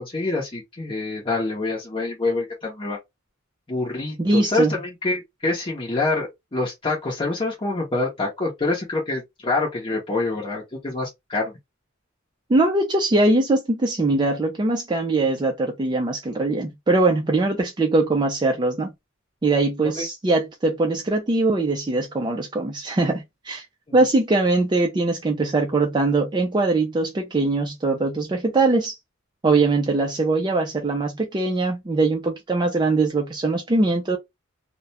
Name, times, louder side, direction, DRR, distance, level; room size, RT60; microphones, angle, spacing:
voice 1, 0.0-3.0 3.7-11.5 19.8-20.1, left 3 dB, 25° left, 0.7 m, -26 dB
voice 2, 4.2-4.7 12.5-18.9 19.4-23.6 23.9-29.0 29.4-34.2, right 2 dB, 20° right, 0.4 m, -21 dB
2.3 x 2.1 x 2.7 m
head